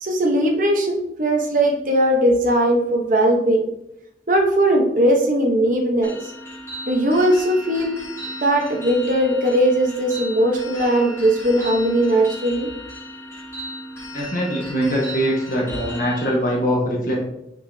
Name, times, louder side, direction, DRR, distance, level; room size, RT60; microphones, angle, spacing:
voice 1, 0.0-3.7 4.3-6.3 6.8-8.0 8.4-12.7, right 1 dB, 45° right, 1 dB, 1.1 m, -19 dB
sound 1, 6.0-16.3, equal, 15° left, 1.5 m, -36 dB
voice 2, 14.1-17.2, equal, 50° left, -3 dB, 1.4 m, -22 dB
6.1 x 5.9 x 2.8 m, 0.81 s
head